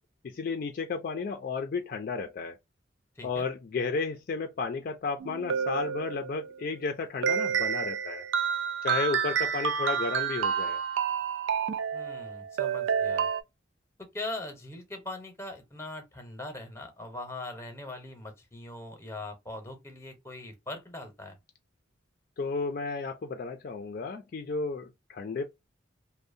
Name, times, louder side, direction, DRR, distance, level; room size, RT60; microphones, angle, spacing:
voice 1, 0.2-2.6 3.2-8.2 8.8-10.8 22.4-25.4, left 4 dB, 50° left, 0.3 m, -33 dB
voice 2, 3.2-3.5 11.9-13.3 14.0-21.4, left 2 dB, 15° left, 0.7 m, -41 dB
sound 1, 5.2-6.5 7.2-13.4, right 7 dB, 85° right, 0.3 m, -29 dB
2.6 x 2.0 x 2.5 m
head